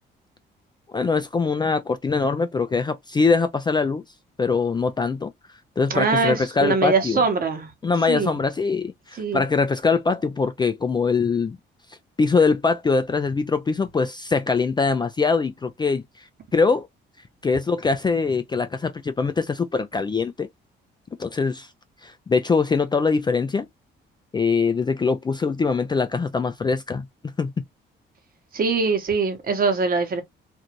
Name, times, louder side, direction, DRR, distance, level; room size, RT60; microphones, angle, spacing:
voice 1, 0.9-4.0 4.4-5.3 5.8-7.2 7.8-11.6 12.2-16.0 16.5-16.9 17.4-20.5 21.2-21.7 22.0-23.7 24.3-27.5, left 4 dB, 20° left, 0.3 m, -22 dB
voice 2, 5.9-7.7 8.1-8.4 9.2-9.5 28.5-30.2, right 4 dB, 45° right, 1.1 m, -22 dB
2.6 x 2.4 x 2.9 m
cardioid pair, 90°, 20 cm